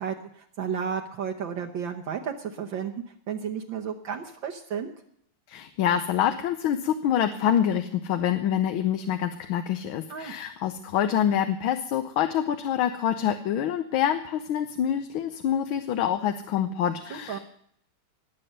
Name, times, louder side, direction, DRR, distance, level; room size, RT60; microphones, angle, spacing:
voice 1, 0.0-4.9 10.1-10.3 17.1-17.4, right 7 dB, 65° right, 2 dB, 1.6 m, -33 dB
voice 2, 5.5-17.4, left 9 dB, 75° left, 8 dB, 1.6 m, -26 dB
20.5 x 7.8 x 6.6 m, 0.70 s
omnidirectional pair, 2.3 m